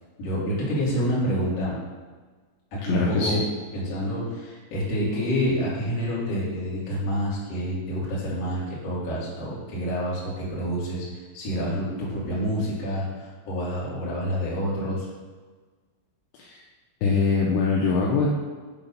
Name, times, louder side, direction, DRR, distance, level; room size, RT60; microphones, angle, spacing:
voice 1, 0.2-1.7 2.7-3.4 3.7-11.0 11.3-15.1, equal, 45° left, -7 dB, 2.6 m, -28 dB
voice 2, 2.8-3.4 16.3-16.6 17.0-18.4, left 4 dB, 80° left, -3 dB, 2.5 m, -23 dB
8.5 x 3.9 x 5.4 m, 1.4 s
omnidirectional pair, 5.4 m